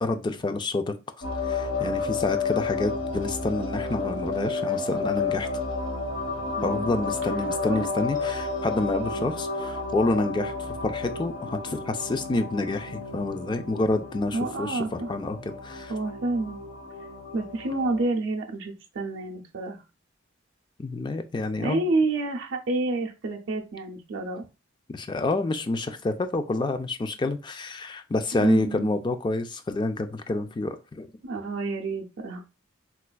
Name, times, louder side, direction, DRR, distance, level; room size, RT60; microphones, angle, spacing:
voice 1, 0.0-0.9 1.4-5.5 6.6-15.9 20.8-21.8 24.9-31.1, left 2 dB, 25° left, 0.3 m, -28 dB
sound 1, 1.2-18.0, left 4 dB, 75° left, 1.1 m, -31 dB
voice 2, 6.6-7.1 7.7-7.9 14.3-15.1 15.9-16.6 17.3-19.8 21.6-24.4 28.4-28.9 31.2-32.4, right 2 dB, 75° right, 0.6 m, -29 dB
4.2 x 2.3 x 2.2 m
head